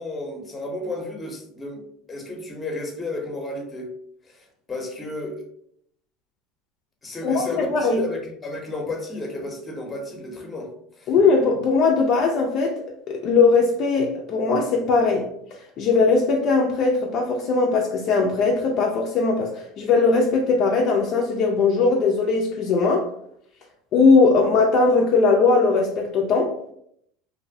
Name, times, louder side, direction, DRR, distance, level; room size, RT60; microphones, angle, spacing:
voice 1, 0.0-3.9 4.3-5.4 7.0-10.7 11.0-11.1, left 2 dB, 20° left, 0.7 m, -32 dB
voice 2, 7.2-8.0 11.1-15.2 15.8-23.1 23.9-26.5, left 4 dB, 50° left, 0.4 m, -19 dB
2.6 x 2.1 x 2.6 m
supercardioid pair, 110°, 0 cm